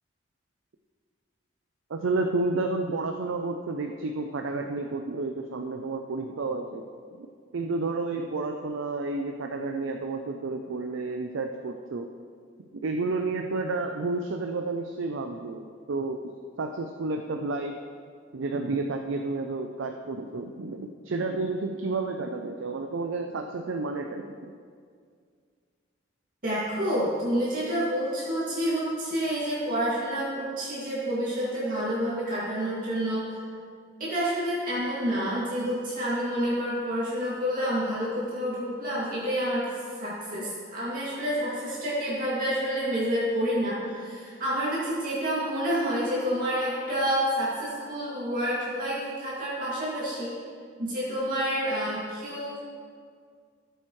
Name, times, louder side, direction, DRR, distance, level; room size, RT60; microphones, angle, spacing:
voice 1, 1.9-6.8 7.2-12.1 12.7-17.8 18.3-24.5, right 3 dB, 80° right, 4 dB, 0.5 m, -31 dB
voice 2, 26.4-33.2 34.0-39.7 40.0-50.3 50.8-52.6, equal, 45° right, -8 dB, 2.3 m, -28 dB
14.0 x 7.8 x 3.2 m, 2.1 s
head